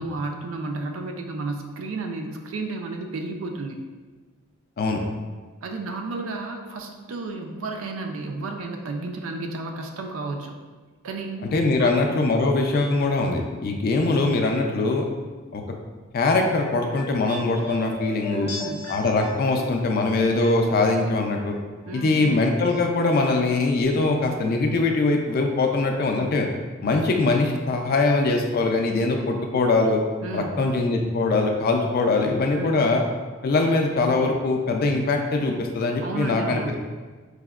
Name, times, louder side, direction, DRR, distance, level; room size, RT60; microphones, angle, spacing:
voice 1, 0.0-3.8 5.6-10.6 11.0-11.5 11.8-12.0 18.3-18.9 21.9-22.2 30.2-30.7 32.5-32.8 36.0-36.8, right 3 dB, 75° right, 4 dB, 0.4 m, -32 dB
voice 2, 11.5-15.1 15.5-15.6 16.1-18.5 18.9-21.6 21.9-26.5 26.8-30.0 30.3-33.0 33.4-36.6, left 3 dB, 45° left, 3 dB, 0.3 m, -22 dB
sound 1, 16.6-21.6 21.8-22.8 23.0-23.1, left 2 dB, 30° left, 0.8 m, -38 dB
4.7 x 2.1 x 2.3 m, 1.4 s
head